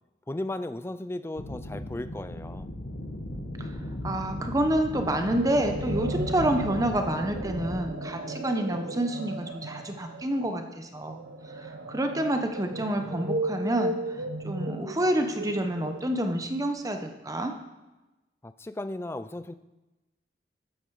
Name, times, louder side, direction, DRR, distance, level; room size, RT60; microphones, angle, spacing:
voice 1, 0.3-2.7 18.4-19.5, left 1 dB, 15° left, 12 dB, 0.4 m, -35 dB
sound 1, 1.4-7.8, left 1 dB, 70° left, 1.4 m, -36 dB
voice 2, 4.0-11.2 11.6-14.0 14.4-17.5, right 1 dB, 20° right, 6 dB, 0.9 m, -28 dB
sound 2, 5.0-16.3, right 1 dB, 85° right, 1.2 m, -35 dB
13.0 x 9.2 x 4.8 m, 1.1 s
head